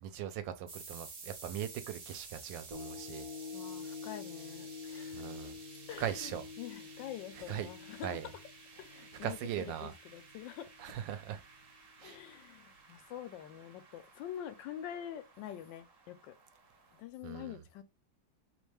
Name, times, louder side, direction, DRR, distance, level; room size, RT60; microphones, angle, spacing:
voice 1, 0.0-3.3 5.1-5.5 6.0-6.4 7.4-7.7 8.0-8.3 9.1-9.9 10.8-11.4 12.0-12.2 17.2-17.6, right 10 dB, 80° right, 1.3 m, -40 dB
sound 1, 0.7-17.0, right 4 dB, 45° right, 0.9 m, -54 dB
sound 2, 2.7-11.1 11.6-11.7, left 6 dB, 60° right, 1.3 m, -48 dB
voice 2, 3.5-5.2 5.9-8.2 8.8-10.7 12.0-16.4 16.9-17.8, left 11 dB, 80° left, 1.3 m, -46 dB
3.2 x 3.1 x 3.3 m
omnidirectional pair, 2.0 m